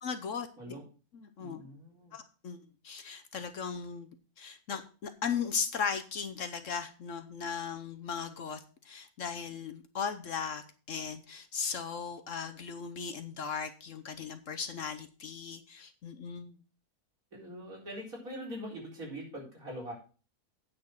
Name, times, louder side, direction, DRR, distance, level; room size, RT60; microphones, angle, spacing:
voice 1, 0.0-0.7 1.1-1.6 2.1-4.1 4.4-16.6, left 6 dB, 60° left, 8 dB, 1.1 m, -37 dB
voice 2, 1.4-2.2 17.3-19.9, equal, 65° right, -3 dB, 4.5 m, -43 dB
8.9 x 6.2 x 6.3 m, 0.37 s
omnidirectional pair, 1.6 m